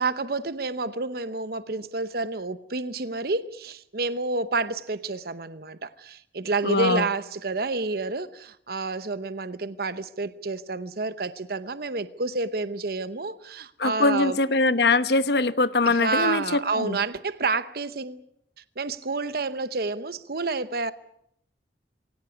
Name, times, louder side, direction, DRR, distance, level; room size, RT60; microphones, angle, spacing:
voice 1, 0.0-14.4 15.9-18.2 18.8-20.9, right 3 dB, 55° right, 13 dB, 0.9 m, -29 dB
voice 2, 6.6-7.1 13.8-17.0, left 3 dB, 65° left, 13 dB, 1.1 m, -22 dB
22.0 x 18.0 x 9.7 m, 0.75 s
head